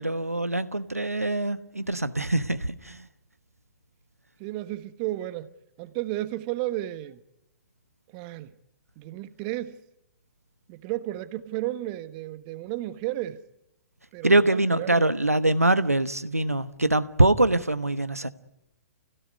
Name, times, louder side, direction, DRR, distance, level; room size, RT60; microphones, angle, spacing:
voice 1, 0.0-3.0 14.2-18.3, right 2 dB, 90° right, 1.1 m, -23 dB
voice 2, 4.4-5.5 5.8-7.2 8.1-8.5 9.0-9.8 10.7-13.4 14.1-15.1, right 15 dB, 35° right, 1.2 m, -33 dB
30.0 x 17.0 x 9.5 m
figure-of-eight pair, 115°, 8 cm